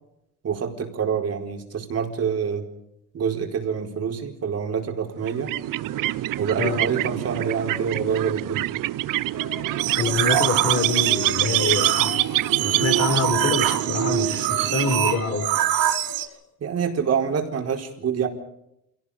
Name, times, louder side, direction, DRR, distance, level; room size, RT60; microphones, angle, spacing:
voice 1, 0.4-2.7 3.1-5.5 6.4-8.7 16.6-18.3, right 7 dB, 45° right, 3 dB, 4.6 m, -26 dB
sound 1, 5.2-15.6, right 16 dB, 70° right, 0.7 m, -26 dB
sound 2, 5.7-6.3 6.7-8.5 9.3-16.4, left 8 dB, 70° left, 7.4 m, -40 dB
sound 3, 9.8-16.3, right 12 dB, 90° right, 2.2 m, -25 dB
voice 2, 10.0-12.1 12.6-15.5, left 3 dB, 40° left, 7 dB, 5.7 m, -26 dB
28.0 x 18.0 x 5.1 m, 0.79 s
cardioid pair, 135°, 34 cm